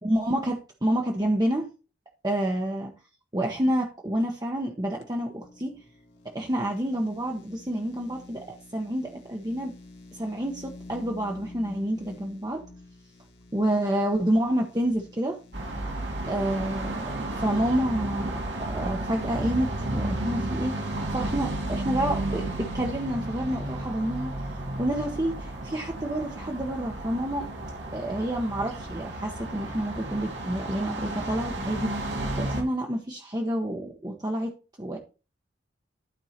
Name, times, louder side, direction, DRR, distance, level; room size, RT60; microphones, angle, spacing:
voice 1, 0.0-1.7 2.2-2.9 3.3-5.8 6.3-9.7 10.1-12.6 13.5-15.4 16.3-18.4 18.7-27.5 27.9-34.5 34.8-35.0, right 1 dB, 20° right, 0 dB, 1.0 m, -29 dB
sound 1, 5.0-20.8, left 2 dB, 65° left, 1.9 m, -50 dB
sound 2, 15.5-32.6, right 1 dB, 70° right, 2.3 m, -33 dB
12.0 x 4.6 x 4.3 m, 0.33 s
head